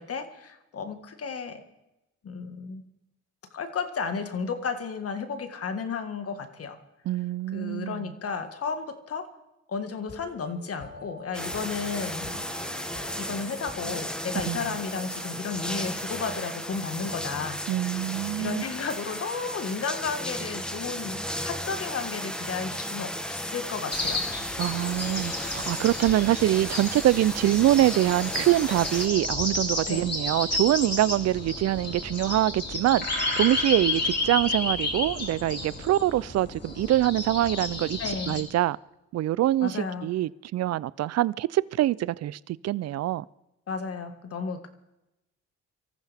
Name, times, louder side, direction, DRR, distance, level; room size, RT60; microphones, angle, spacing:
voice 1, 0.0-1.6 2.2-2.8 3.5-6.8 7.5-9.3 9.7-12.4 13.2-17.6 18.4-24.4 29.9-30.1 38.0-38.4 39.6-40.1 43.7-44.7, left 5 dB, 50° left, 1.7 m, -33 dB
voice 2, 7.1-8.1 14.5-14.6 17.7-18.6 24.6-38.0 38.3-38.8 39.1-43.2, right 14 dB, 60° right, 0.5 m, -24 dB
sound 1, 10.0-15.1, left 3 dB, 65° left, 2.9 m, -47 dB
sound 2, 11.3-29.1, equal, 5° left, 1.2 m, -35 dB
sound 3, 23.9-38.4, left 2 dB, 35° left, 4.2 m, -31 dB
24.5 x 14.0 x 3.5 m
cardioid pair, 90°, 30 cm